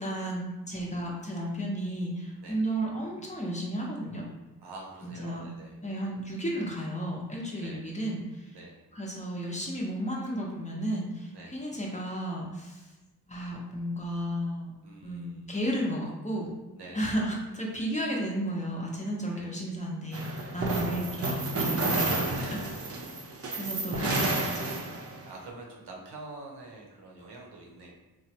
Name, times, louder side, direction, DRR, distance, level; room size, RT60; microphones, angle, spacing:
voice 1, 0.0-4.2 5.0-5.4 5.8-8.6 8.9-12.9 13.3-14.7 15.0-16.5 16.9-22.2 22.5-22.6 23.5-24.7, right 1 dB, 20° left, -3 dB, 0.7 m, -33 dB
voice 2, 4.6-5.8 7.6-7.8 8.5-8.8 11.3-11.6 14.8-15.6 16.8-17.1 19.3-19.5 20.6-21.1 22.3-22.6 25.2-27.9, right 2 dB, 80° right, -1 dB, 0.8 m, -46 dB
sound 1, 20.1-25.3, right 2 dB, 35° right, 0.6 m, -30 dB
3.1 x 2.1 x 2.8 m, 1.1 s
cardioid pair, 45°, 39 cm